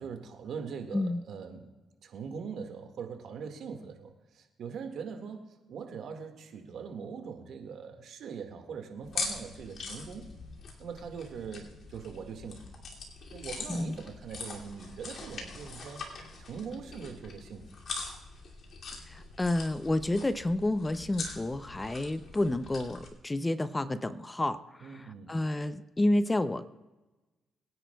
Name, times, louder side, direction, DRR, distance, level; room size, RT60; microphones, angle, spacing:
voice 1, 0.0-1.7 2.0-5.4 5.7-10.3 10.8-12.6 13.3-16.0 16.5-17.7 24.8-25.3, right 6 dB, 70° right, 4 dB, 1.8 m, -41 dB
sound 1, 9.0-23.1, left 3 dB, 55° left, 2.6 m, -42 dB
voice 2, 19.1-26.7, left 1 dB, 15° left, 12 dB, 0.6 m, -30 dB
23.0 x 10.0 x 2.3 m, 1.1 s
cardioid pair, 90°, 0 cm